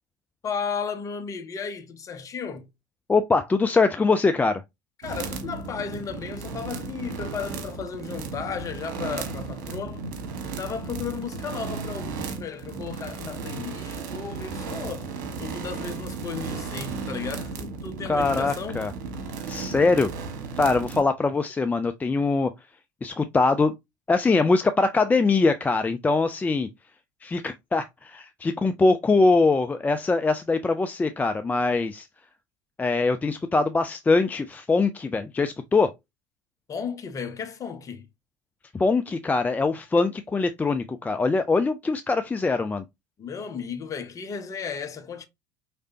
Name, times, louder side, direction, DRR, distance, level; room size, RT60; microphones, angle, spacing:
voice 1, 0.4-2.7 5.0-10.0 10.4-15.1 15.4-18.8 36.7-38.1 43.2-45.3, left 6 dB, 35° left, 1.0 m, -34 dB
voice 2, 3.1-4.6 18.1-18.9 19.5-20.1 20.6-22.5 23.0-23.7 24.1-26.7 27.2-32.1 32.8-35.9 38.7-42.8, left 3 dB, 15° left, 0.4 m, -22 dB
sound 1, 5.0-21.0, right 4 dB, 65° right, 1.4 m, -35 dB
4.9 x 3.3 x 2.7 m
hypercardioid pair, 70°, 10 cm